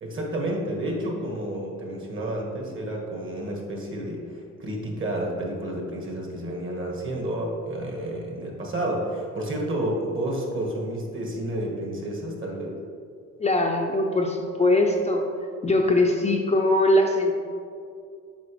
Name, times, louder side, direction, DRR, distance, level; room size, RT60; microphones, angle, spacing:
voice 1, 0.0-12.8, right 1 dB, 40° right, -1 dB, 1.4 m, -30 dB
voice 2, 13.4-15.2 15.6-17.3, left 1 dB, 20° left, 1 dB, 0.5 m, -21 dB
7.3 x 4.5 x 3.1 m, 2.3 s
cardioid pair, 90°, 30 cm